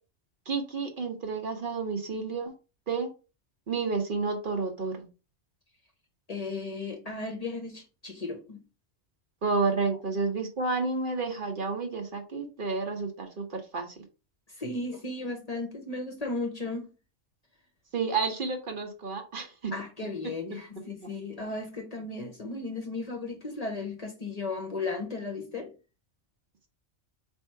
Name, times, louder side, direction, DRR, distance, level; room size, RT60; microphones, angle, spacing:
voice 1, 0.5-2.5 2.9-3.1 3.7-5.1 9.4-14.0 17.9-19.7, right 4 dB, 50° right, 0.9 m, -30 dB
voice 2, 6.3-8.6 14.5-16.9 19.7-25.7, left 3 dB, 40° left, 0.8 m, -35 dB
4.2 x 2.7 x 4.5 m
omnidirectional pair, 1.2 m